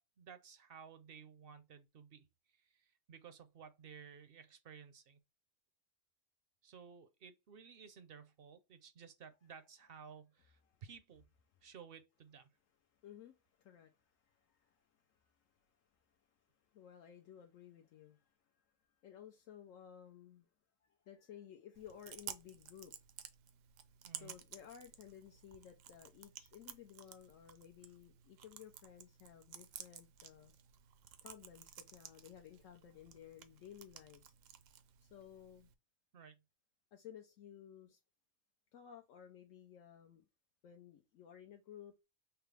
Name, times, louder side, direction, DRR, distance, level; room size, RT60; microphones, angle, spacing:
voice 1, 0.0-2.3 2.5-5.2 6.6-11.2 11.6-12.5 24.0-24.3 36.1-36.4, right 7 dB, 60° right, 0.7 m, -56 dB
voice 2, 12.9-20.5 20.8-22.9 24.1-30.5 31.2-34.2 35.0-35.7 36.9-38.0 38.7-40.2 40.6-41.9, left 9 dB, 80° left, 1.0 m, -56 dB
Chewing mastication, 21.7-35.7, right 9 dB, 80° right, 1.0 m, -54 dB
5.6 x 2.0 x 3.2 m
omnidirectional pair, 1.3 m